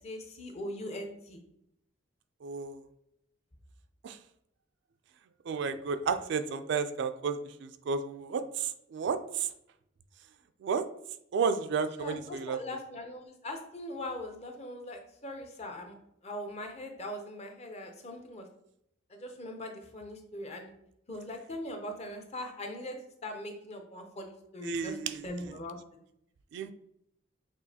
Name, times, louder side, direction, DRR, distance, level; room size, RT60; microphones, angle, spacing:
voice 1, 0.0-1.4 12.0-15.9 16.2-18.5 19.1-20.7 21.1-23.0 23.2-25.0 25.2-25.8, left 1 dB, 35° left, 4 dB, 0.6 m, -41 dB
voice 2, 2.4-2.8 4.0-4.2 5.5-9.5 10.6-10.8 11.3-12.6 24.6-25.5 26.5-26.7, right 5 dB, 60° right, 9 dB, 0.3 m, -32 dB
6.2 x 2.4 x 2.8 m, 0.76 s
head